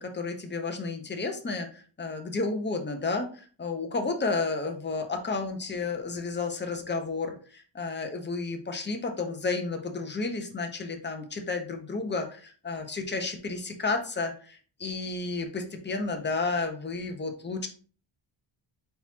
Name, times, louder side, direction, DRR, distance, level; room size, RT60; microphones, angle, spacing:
voice 1, 0.0-17.7, left 3 dB, 20° left, 4 dB, 0.9 m, -32 dB
4.4 x 3.9 x 2.8 m, 0.40 s
cardioid pair, 100°, 48 cm